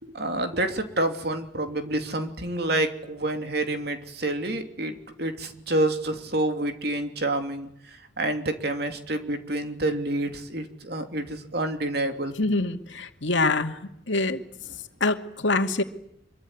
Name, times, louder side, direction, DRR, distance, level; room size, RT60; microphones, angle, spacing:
voice 1, 0.1-12.3, right 1 dB, 55° right, 3.0 m, -28 dB
voice 2, 12.4-13.8 14.1-14.4 15.0-15.8, left 2 dB, 75° left, 2.4 m, -25 dB
25.5 x 23.5 x 9.8 m
head